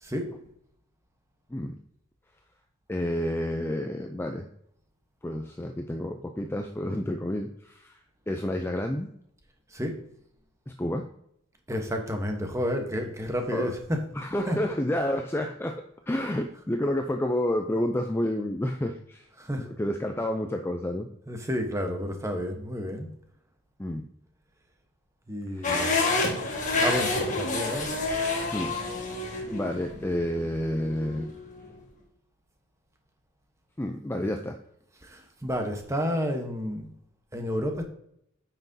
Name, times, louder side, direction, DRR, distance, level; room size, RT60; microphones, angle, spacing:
voice 1, 0.0-0.3 9.7-10.0 11.7-14.0 14.5-14.6 19.4-19.7 21.3-23.1 25.3-25.9 26.8-27.9 35.0-36.8 37.3-37.8, equal, 15° right, 4 dB, 1.0 m, -30 dB
voice 2, 2.9-4.5 5.2-8.0 8.3-9.1 10.8-11.0 13.5-13.7 14.1-19.2 19.6-21.1 23.8-24.1 25.5-25.7 28.5-28.7 29.5-31.3 33.8-34.6, left 1 dB, 10° left, 4 dB, 0.4 m, -30 dB
sound 1, 25.6-31.7, left 3 dB, 35° left, 1.6 m, -29 dB
9.0 x 5.9 x 2.7 m, 0.73 s
head